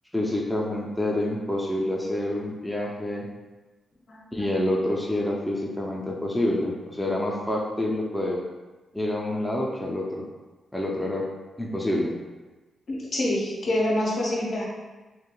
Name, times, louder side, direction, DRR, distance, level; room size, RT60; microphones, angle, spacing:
voice 1, 0.1-3.3 4.3-8.4 8.9-10.2 10.7-11.3 11.6-12.1, left 1 dB, 5° left, -3 dB, 0.4 m, -27 dB
voice 2, 4.1-4.5 12.9-14.6, left 1 dB, 60° left, -4 dB, 0.7 m, -26 dB
2.9 x 2.4 x 2.2 m, 1.2 s
cardioid pair, 65°, 0 cm